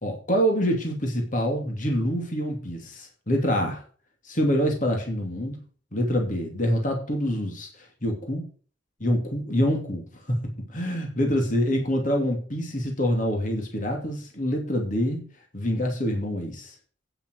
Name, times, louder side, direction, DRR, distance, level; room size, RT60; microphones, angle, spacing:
voice 1, 0.0-3.8 4.2-5.6 5.9-8.4 9.0-10.4 10.7-15.2 15.5-16.7, equal, 40° left, 2 dB, 2.7 m, -26 dB
9.3 x 9.1 x 4.7 m, 0.40 s
head